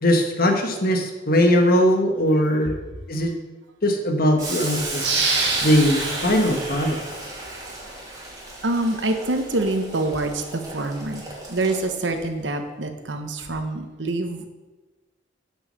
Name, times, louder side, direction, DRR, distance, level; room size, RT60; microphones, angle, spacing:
voice 1, 0.0-2.8 3.1-3.3 3.8-5.0 5.6-7.0, equal, 55° left, 4 dB, 1.4 m, -20 dB
Boiling, 4.4-12.2, right 2 dB, 20° right, 2.5 m, -34 dB
sound 1, 5.0-7.7 8.1-8.2, right 4 dB, 70° right, 1.9 m, -27 dB
voice 2, 8.6-11.2 11.5-14.5, right 2 dB, 85° right, 6 dB, 1.1 m, -26 dB
7.1 x 6.4 x 6.8 m, 1.2 s
head